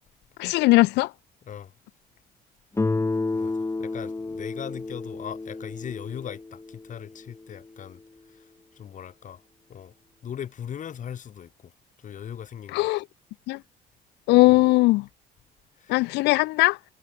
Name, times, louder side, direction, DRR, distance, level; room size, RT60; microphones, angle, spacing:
voice 1, 0.4-1.1 12.7-13.0 13.5-13.6 14.3-15.0 15.9-16.8, left 21 dB, 90° left, 1.0 m, -19 dB
Guitar, 2.8-7.6, left 3 dB, 15° left, 6.7 m, -31 dB
voice 2, 3.3-8.0 8.3-8.4 8.7-9.4 9.7-9.9 10.2-11.7 12.0-12.9 14.5-14.6 15.8-16.0, left 9 dB, 50° left, 5.1 m, -39 dB
cardioid pair, 110°, 17 cm